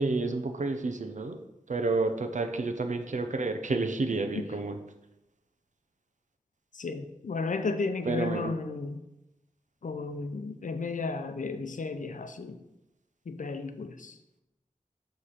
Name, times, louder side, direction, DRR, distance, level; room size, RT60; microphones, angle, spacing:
voice 1, 0.0-1.4 1.7-4.8 8.0-8.5, right 3 dB, 60° right, 7 dB, 0.6 m, -30 dB
voice 2, 6.7-9.0 9.8-12.6 13.3-14.2, left 3 dB, 65° left, 9 dB, 0.6 m, -33 dB
6.6 x 3.2 x 5.6 m, 0.92 s
wide cardioid pair, 45°, 14 cm